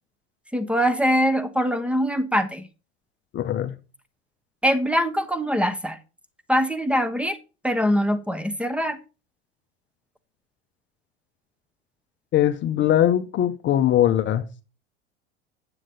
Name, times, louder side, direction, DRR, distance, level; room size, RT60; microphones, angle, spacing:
voice 1, 0.5-2.7 4.6-6.0 6.5-7.4 7.6-9.0, equal, 5° right, 1.1 m, -23 dB
voice 2, 3.3-3.8 12.3-14.6, left 11 dB, 35° left, 0.8 m, -21 dB
9.1 x 7.8 x 3.9 m
hypercardioid pair, 80°, 34 cm